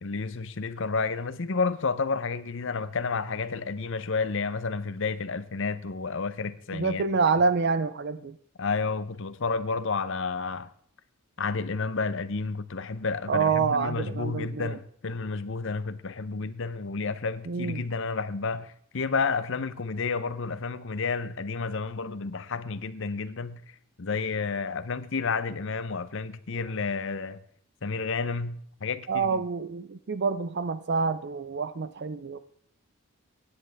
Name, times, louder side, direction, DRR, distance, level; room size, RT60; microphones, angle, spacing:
voice 1, 0.0-7.0 8.6-10.7 11.4-23.6 24.0-27.4 27.8-29.4, left 4 dB, 60° left, 0.8 m, -31 dB
voice 2, 6.7-8.4 13.3-14.8 17.5-17.8 29.1-32.4, right 5 dB, 50° right, 0.5 m, -27 dB
16.5 x 10.0 x 3.5 m
head